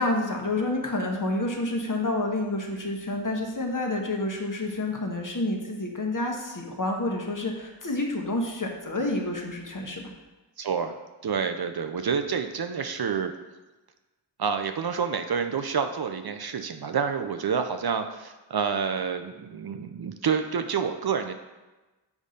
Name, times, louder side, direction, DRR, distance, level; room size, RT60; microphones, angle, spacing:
voice 1, 0.0-10.0, left 2 dB, 45° left, 1 dB, 1.0 m, -29 dB
voice 2, 10.6-10.9 11.2-13.3 14.4-21.3, right 6 dB, 55° right, 7 dB, 0.5 m, -28 dB
7.2 x 2.7 x 5.0 m, 1.1 s
wide cardioid pair, 45°, 46 cm